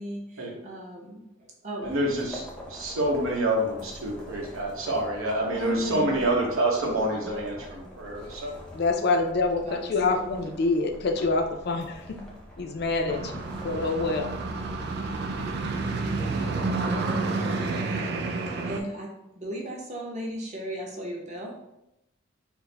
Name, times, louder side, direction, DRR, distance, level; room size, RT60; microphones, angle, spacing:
voice 1, 0.0-1.9 5.5-6.4 6.9-7.4 9.6-10.6 18.6-21.5, equal, 35° right, -2 dB, 0.8 m, -36 dB
sound 1, 1.8-16.0, equal, 5° left, 0.6 m, -45 dB
voice 2, 1.8-8.5, right 1 dB, 85° right, -1 dB, 0.9 m, -27 dB
voice 3, 8.7-12.2 12.6-14.3, left 3 dB, 50° left, 5 dB, 0.4 m, -26 dB
sound 2, 13.1-18.8, right 3 dB, 50° right, 0.3 m, -29 dB
4.4 x 2.0 x 3.3 m, 0.87 s
head